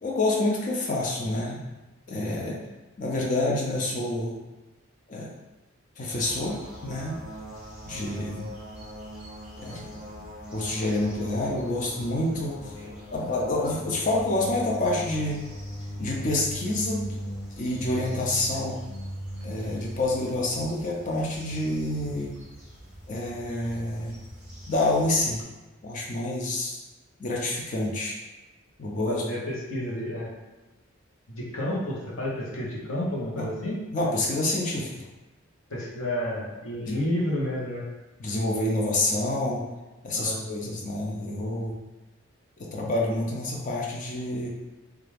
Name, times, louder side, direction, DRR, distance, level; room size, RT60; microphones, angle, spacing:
voice 1, 0.0-1.6 2.1-2.6 3.0-4.4 5.1-5.3 6.0-7.2 7.9-8.5 9.6-9.8 10.5-12.7 13.1-15.4 16.0-17.2 17.6-18.8 19.4-22.3 23.1-24.2 24.7-25.4 25.8-26.8 27.2-28.2 28.8-29.2 33.4-33.5 33.9-35.0 36.8-37.0 38.2-39.6 40.0-41.8 42.6-44.5, left 2 dB, 40° left, -2 dB, 0.4 m, -28 dB
sound 1, 6.1-25.4, equal, 5° right, 0.6 m, -40 dB
voice 2, 29.1-30.3 31.3-33.8 35.7-37.8 40.1-40.4, left 1 dB, 85° left, -5 dB, 0.8 m, -30 dB
2.4 x 2.2 x 3.2 m, 1.1 s
head